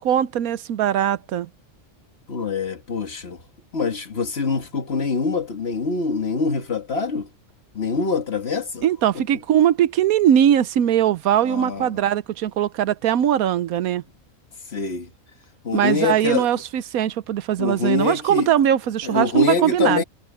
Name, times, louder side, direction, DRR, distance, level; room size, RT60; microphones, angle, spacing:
voice 1, 0.0-1.5 8.8-14.0 15.7-20.0, right 10 dB, 85° right, 1.2 m, -20 dB
voice 2, 2.3-3.4 3.7-7.3 7.7-8.9 9.1-9.2 11.4-11.9 14.7-15.1 15.6-16.5 17.6-18.5 19.0-20.0, left 4 dB, 50° left, 2.0 m, -24 dB
omnidirectional pair, 1.5 m